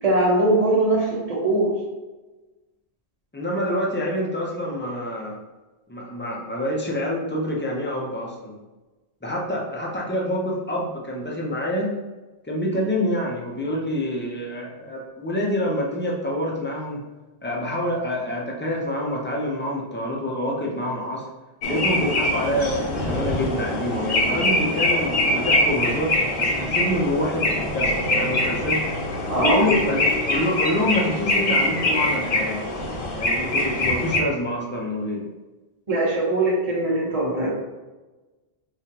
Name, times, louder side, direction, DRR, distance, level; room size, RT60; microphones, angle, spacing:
voice 1, 0.0-1.7 29.3-29.7 35.9-37.5, right 2 dB, 35° right, -5 dB, 1.1 m, -21 dB
voice 2, 3.3-5.4 5.9-8.6 9.2-11.9 12.4-17.0 17.4-21.2 21.7-26.1 26.4-28.8 29.4-32.6 33.1-35.3, left 1 dB, 15° left, -3 dB, 0.5 m, -26 dB
sound 1, 21.6-34.2, left 1 dB, 60° left, 0.8 m, -23 dB
5.0 x 2.4 x 2.8 m, 1.2 s
omnidirectional pair, 1.1 m